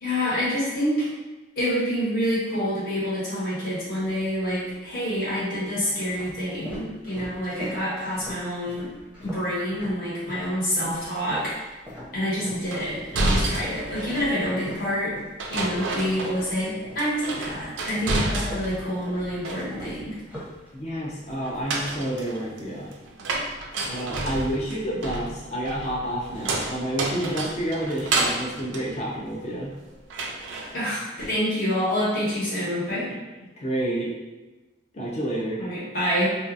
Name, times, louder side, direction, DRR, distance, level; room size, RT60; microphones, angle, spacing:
voice 1, 0.0-1.1 1.6-8.9 9.2-11.7 12.1-15.1 15.5-20.1 30.7-33.1 35.6-36.3, equal, 55° left, -9 dB, 1.3 m, -27 dB
Walking On A Wooden Floor, 4.0-4.7 5.4-10.5 10.8-17.1 17.4-21.1, equal, 5° right, 0.7 m, -42 dB
sound 1, 12.7-14.3 15.4-16.7 17.0-18.9 19.2-20.0 21.4-29.7 30.1-30.7, right 2 dB, 85° right, 0.4 m, -30 dB
voice 2, 20.7-22.9 23.9-29.7 33.4-34.1 34.9-35.6, right 1 dB, 35° left, -5 dB, 0.6 m, -29 dB
2.7 x 2.3 x 2.5 m, 1.1 s
head